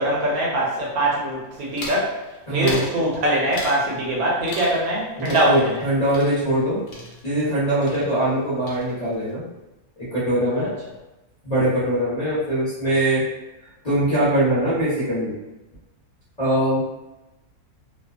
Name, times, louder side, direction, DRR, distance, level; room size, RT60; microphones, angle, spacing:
voice 1, 0.0-2.2 2.5-5.8 7.9-8.0 10.5-10.7, right 1 dB, 70° right, -4 dB, 1.0 m, -22 dB
sound 1, 1.8-2.1 2.6-3.0 3.5-3.9 4.5-5.0 5.2-7.6 7.8-8.4 8.7-9.2, left 2 dB, 75° left, 0.5 m, -37 dB
voice 2, 2.5-2.9 5.2-6.8 7.2-9.4 10.0-10.7 11.4-13.3 13.8-15.3 16.4-16.8, right 1 dB, 30° left, -13 dB, 1.0 m, -22 dB
2.7 x 2.2 x 2.4 m, 1.0 s
omnidirectional pair, 1.7 m